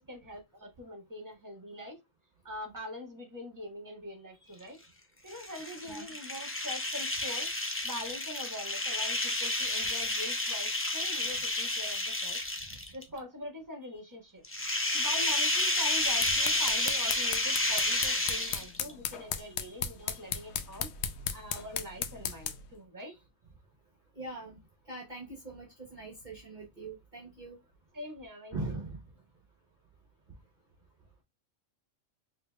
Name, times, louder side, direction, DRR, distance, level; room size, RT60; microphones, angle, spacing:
voice 1, 0.0-2.0 2.4-4.8 5.2-7.5 7.8-12.4 12.9-14.4 14.9-20.9 21.3-23.2 27.9-28.5, left 1 dB, 15° right, 1.4 m, -43 dB
sound 1, 5.3-13.0 14.4-18.9, left 2 dB, 20° left, 0.4 m, -31 dB
sound 2, 15.9-22.7, left 7 dB, 65° left, 0.8 m, -37 dB
voice 2, 17.5-18.6 19.4-20.2 21.4-21.6 23.0-23.1 24.2-24.6 24.9-27.6 28.5-29.0, right 2 dB, 35° right, 1.1 m, -43 dB
5.0 x 3.1 x 2.2 m
omnidirectional pair, 1.4 m